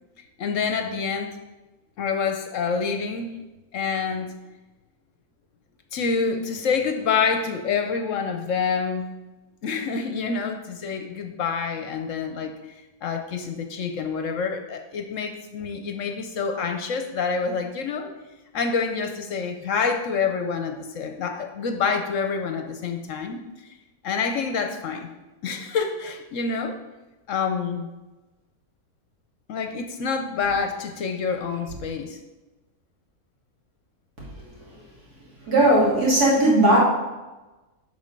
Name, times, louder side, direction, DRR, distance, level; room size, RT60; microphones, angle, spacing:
voice 1, 0.4-1.4 2.0-3.4 3.7-4.3 5.9-9.1 9.6-12.5 13.0-18.1 18.5-23.4 24.0-25.1 25.4-26.8 27.3-27.9 29.5-32.2, left 5 dB, 65° left, 6 dB, 0.9 m, -27 dB
voice 2, 35.5-36.8, right 1 dB, 75° right, -6 dB, 3.1 m, -17 dB
7.4 x 5.6 x 5.2 m, 1.1 s
omnidirectional pair, 1.6 m